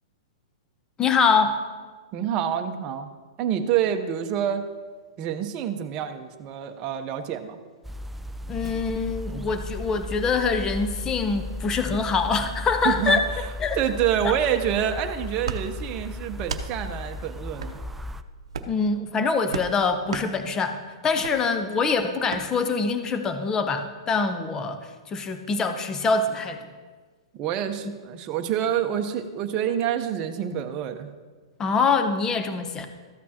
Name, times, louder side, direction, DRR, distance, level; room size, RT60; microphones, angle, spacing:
voice 1, 1.0-1.6 8.5-13.2 13.6-13.8 14.2-14.3 18.7-26.6 31.6-32.9, left 4 dB, 20° left, 8 dB, 0.8 m, -24 dB
voice 2, 2.1-3.1 3.4-4.6 5.2-7.6 12.8-13.5 13.7-17.8 27.4-31.1, right 9 dB, 35° right, 5 dB, 0.8 m, -27 dB
sound 1, 7.8-18.2, left 1 dB, 5° right, 0.4 m, -35 dB
sound 2, 15.4-15.6 16.4-16.7 17.6-17.8 18.5-18.8 19.5-19.7 20.1-20.3 21.2-21.4 22.3-22.4, right 5 dB, 80° right, 0.7 m, -32 dB
13.5 x 8.3 x 2.9 m, 1.4 s
hypercardioid pair, 125°, 3 cm